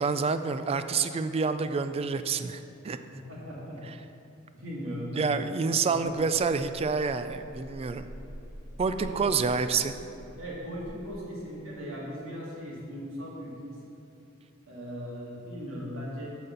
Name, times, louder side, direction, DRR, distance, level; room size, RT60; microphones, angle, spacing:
voice 1, 0.0-3.0 5.2-8.1 8.8-9.9, right 5 dB, 30° right, 10 dB, 0.3 m, -28 dB
voice 2, 3.1-3.8 4.5-6.1 8.9-9.6 10.4-13.8 14.7-16.4, equal, 65° right, -5 dB, 2.2 m, -38 dB
sound 1, 5.9-11.2, equal, 30° left, 1.8 m, -46 dB
8.8 x 4.2 x 6.8 m, 2.7 s
head